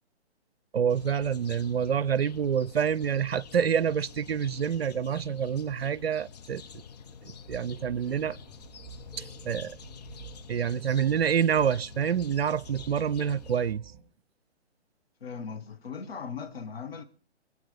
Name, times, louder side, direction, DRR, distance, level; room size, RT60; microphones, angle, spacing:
voice 1, 0.7-6.6 7.2-8.4 9.2-9.8 10.5-13.8, right 8 dB, 60° right, 0.6 m, -27 dB
sound 1, 0.9-13.7, left 7 dB, 35° left, 0.8 m, -48 dB
sound 2, 7.4-14.0, right 10 dB, 20° right, 5.8 m, -50 dB
voice 2, 15.2-17.0, left 6 dB, 60° left, 1.7 m, -38 dB
25.0 x 8.5 x 5.5 m
figure-of-eight pair, 130°, 34 cm